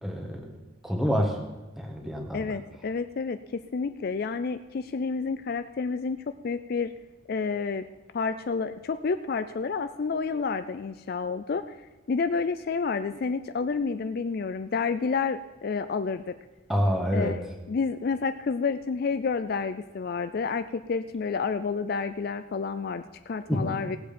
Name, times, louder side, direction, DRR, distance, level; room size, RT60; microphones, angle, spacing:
voice 1, 0.0-0.5 0.8-1.4 1.8-2.5 16.7-17.4 23.5-23.7, equal, ahead, 1 dB, 1.5 m, -27 dB
voice 2, 2.3-6.9 7.3-7.9 8.1-11.8 12.1-16.3 17.1-17.4 17.7-24.0, left 5 dB, 45° left, 11 dB, 0.3 m, -29 dB
17.5 x 7.7 x 5.2 m, 1.1 s
head